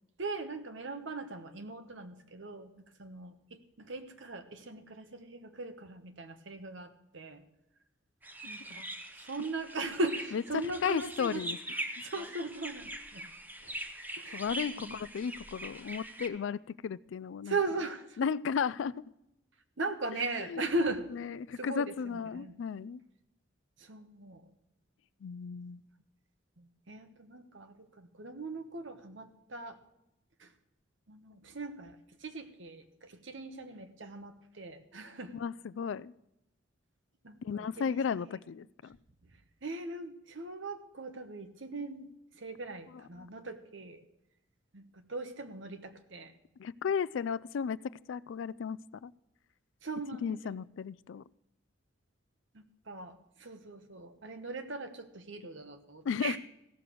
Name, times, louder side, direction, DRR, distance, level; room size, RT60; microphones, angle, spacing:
voice 1, 0.2-2.7 3.0-7.4 8.4-8.9 9.2-11.4 12.0-13.3 13.6-13.8 14.2-14.4 14.8-15.0 17.5-18.3 19.8-21.0 21.5-22.5 23.8-24.4 26.6-29.8 30.4-30.5 31.1-35.3 37.2-38.4 39.6-44.0 44.7-46.3 49.8-50.6 52.5-56.4, right 2 dB, 70° right, 8 dB, 1.1 m, -39 dB
sound 1, 8.2-16.3, right 1 dB, 10° right, 0.7 m, -42 dB
voice 2, 10.3-11.6 14.3-17.6 18.2-18.9 20.4-20.6 21.1-23.0 25.2-25.8 35.3-36.1 37.4-39.0 43.2-43.3 46.6-47.8 48.1-49.1 50.2-51.2 56.0-56.4, left 6 dB, 70° left, 20 dB, 0.3 m, -34 dB
15.5 x 6.8 x 6.2 m, 0.87 s
head